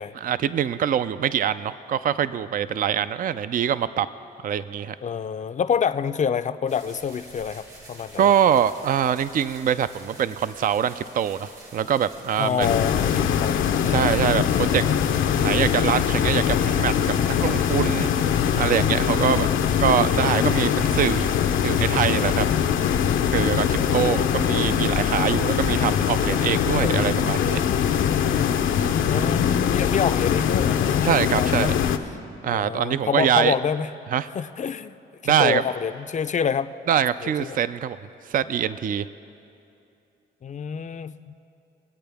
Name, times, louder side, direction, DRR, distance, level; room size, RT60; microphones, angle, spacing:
voice 1, 0.1-4.1 4.4-5.0 8.2-12.7 13.9-14.8 15.4-18.1 18.6-19.5 19.8-21.3 21.6-22.5 23.3-27.6 31.0-31.7 32.4-33.6 34.1-34.3 35.2-35.6 36.9-38.0 38.3-39.1, right 9 dB, 45° right, 14 dB, 0.4 m, -24 dB
voice 2, 5.0-8.3 12.4-14.1 23.8-24.5 29.1-31.7 32.4-33.9 34.3-35.0 35.2-36.7 37.2-37.6 40.4-41.4, left 7 dB, 35° left, 11 dB, 0.5 m, -27 dB
sound 1, 6.7-23.1, right 2 dB, 90° right, 2.2 m, -48 dB
sound 2, 12.6-32.0, left 8 dB, 75° left, 0.7 m, -22 dB
22.5 x 8.6 x 3.5 m, 2.7 s
cardioid pair, 75°, 21 cm